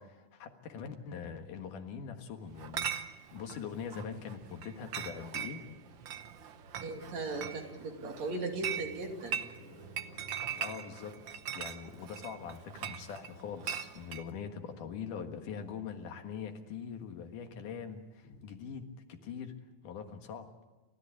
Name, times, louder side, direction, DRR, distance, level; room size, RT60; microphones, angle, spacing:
voice 1, 0.0-5.6 10.6-11.2 11.5-19.6 19.8-20.5, left 7 dB, 90° left, 6 dB, 3.2 m, -43 dB
Chatter / Chink clink, 2.6-14.3, right 8 dB, 85° right, 1.0 m, -41 dB
Car passing by, 3.5-16.0 16.3-18.8, equal, 45° left, 5.6 m, -58 dB
voice 2, 6.8-9.4, right 2 dB, 60° right, 3 dB, 3.7 m, -38 dB
29.5 x 13.5 x 8.4 m, 1.2 s
omnidirectional pair, 3.5 m